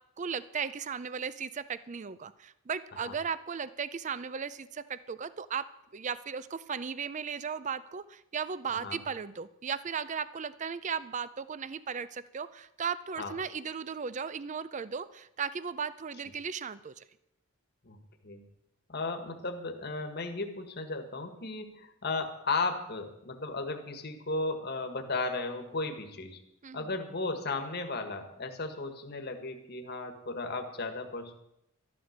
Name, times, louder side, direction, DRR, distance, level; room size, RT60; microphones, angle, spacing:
voice 1, 0.2-5.6 5.9-17.0 26.6-26.9, right 6 dB, 35° right, 15 dB, 0.4 m, -36 dB
voice 2, 18.9-26.4 26.7-31.3, left 3 dB, 50° left, 5 dB, 1.5 m, -35 dB
12.5 x 11.5 x 6.5 m, 0.82 s
head